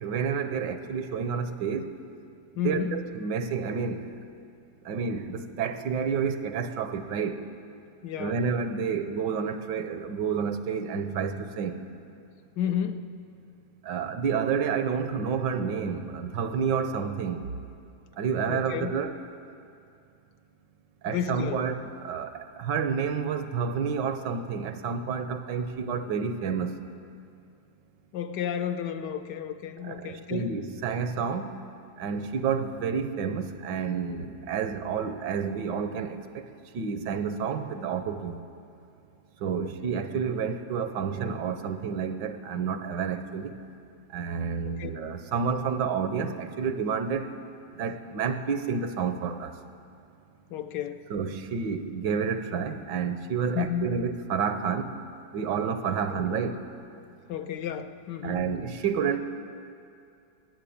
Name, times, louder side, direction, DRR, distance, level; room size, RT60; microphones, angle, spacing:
voice 1, 0.0-1.9 2.6-4.1 4.8-7.4 8.2-11.8 13.8-17.5 18.2-19.2 21.0-26.8 29.8-31.5 32.0-36.4 36.7-38.5 39.4-43.5 44.1-47.3 47.7-49.6 51.1-54.9 55.3-56.6 58.2-59.2, right 6 dB, 80° right, 9 dB, 1.4 m, -29 dB
voice 2, 2.6-3.0 8.0-8.4 12.6-13.1 18.5-19.0 21.0-21.6 28.1-30.5 39.6-39.7 44.6-44.9 50.5-51.1 53.5-53.9 56.1-56.4 57.3-58.4, left 8 dB, 75° left, 9 dB, 1.2 m, -32 dB
14.0 x 9.7 x 8.6 m, 2.5 s
omnidirectional pair, 1.9 m